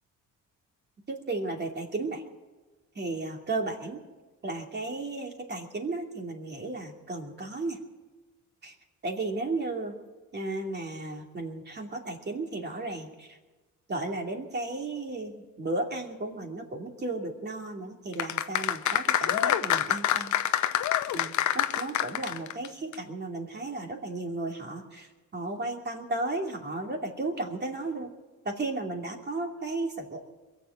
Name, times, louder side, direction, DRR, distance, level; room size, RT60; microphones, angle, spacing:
voice 1, 1.1-2.2 2.9-4.0 4.4-7.8 8.6-8.7 9.0-10.0 10.3-13.4 13.9-20.3 21.1-28.1 28.4-30.3, right 2 dB, 35° right, 2 dB, 2.7 m, -34 dB
sound 1, 18.1-22.7 22.9-23.0, left 11 dB, 75° left, 0.8 m, -26 dB
22.0 x 7.7 x 7.8 m, 1.2 s
cardioid pair, 90°, 30 cm